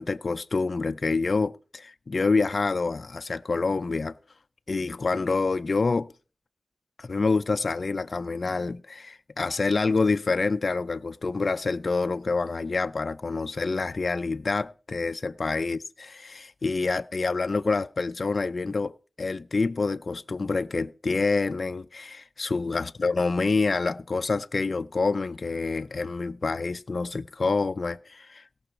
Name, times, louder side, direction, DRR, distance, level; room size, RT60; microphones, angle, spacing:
voice 1, 0.0-4.1 4.7-6.1 7.0-28.4, left 3 dB, 65° left, 0.5 m, -27 dB
17.0 x 6.1 x 5.7 m
cardioid pair, 50°, 0 cm